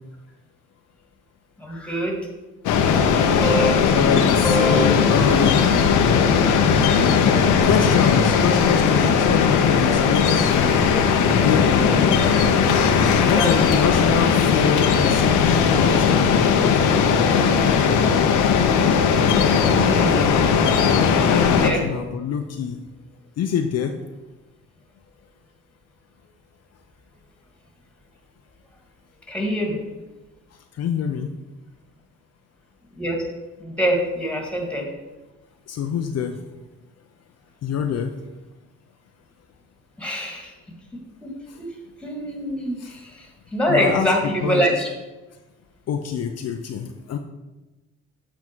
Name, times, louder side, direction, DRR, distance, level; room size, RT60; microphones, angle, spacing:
voice 1, 1.6-2.2 3.4-3.8 4.4-4.9 13.2-13.8 19.2-20.5 21.6-21.8 29.3-29.8 33.0-33.2 33.6-34.9 40.0-40.5 40.9-41.3 41.6-41.7 42.0-44.9, equal, 5° left, 0 dB, 1.9 m, -25 dB
sound 1, 2.7-21.7, left 6 dB, 85° left, 0.8 m, -18 dB
voice 2, 3.9-5.7 7.6-10.8 11.4-12.0 13.3-16.7 21.3-22.8 23.4-23.9 30.8-31.3 35.7-36.4 37.6-38.1 42.8-42.9 43.7-44.1 44.4-44.6 45.9-47.2, left 7 dB, 55° left, 5 dB, 0.6 m, -25 dB
8.3 x 3.7 x 4.5 m, 1.1 s
cardioid pair, 90°, 30 cm